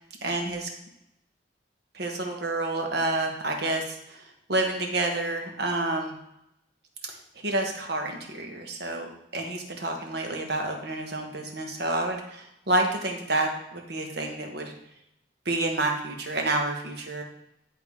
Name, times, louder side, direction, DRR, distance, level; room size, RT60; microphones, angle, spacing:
voice 1, 0.2-0.7 1.9-4.2 4.5-6.2 7.0-7.1 7.4-14.7 15.4-17.2, right 2 dB, 60° right, 2 dB, 1.2 m, -29 dB
10.5 x 3.8 x 3.6 m, 0.81 s
head